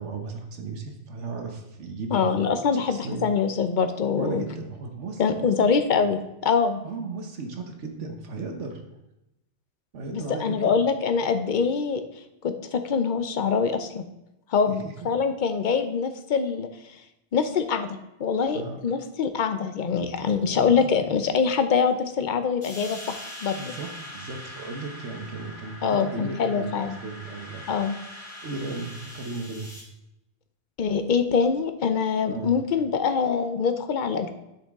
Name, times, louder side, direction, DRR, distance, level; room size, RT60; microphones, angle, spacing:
voice 1, 0.0-2.4 2.8-3.3 4.1-6.0 6.8-8.8 9.9-10.8 14.7-14.9 18.5-18.8 20.2-21.2 23.6-27.6 28.4-29.7 32.3-32.6, right 3 dB, 75° right, 4 dB, 1.3 m, -36 dB
voice 2, 2.1-4.4 5.2-6.8 10.1-12.0 12.4-14.0 14.5-16.7 17.3-23.7 25.8-27.0 27.7-28.0 30.8-34.3, left 6 dB, 50° left, 8 dB, 0.6 m, -24 dB
sound 1, 22.6-29.8, left 1 dB, 85° left, 2.4 m, -42 dB
8.2 x 6.0 x 3.5 m, 0.89 s
omnidirectional pair, 1.2 m